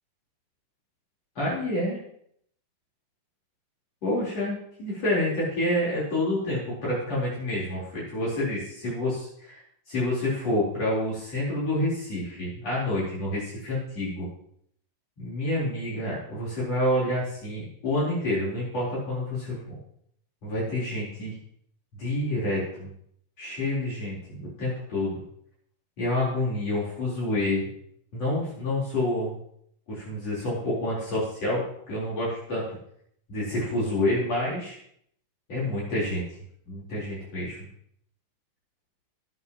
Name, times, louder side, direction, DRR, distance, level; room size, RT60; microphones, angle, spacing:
voice 1, 1.3-2.0 4.0-9.6 9.9-14.3 15.2-19.8 20.4-21.4 21.9-22.9 23.4-25.2 26.0-27.7 28.1-29.4 29.9-32.6 33.3-34.8 35.5-36.2 36.7-37.7, left 1 dB, 45° left, -7 dB, 5.1 m, -28 dB
20.0 x 8.4 x 3.0 m, 0.68 s
omnidirectional pair, 4.1 m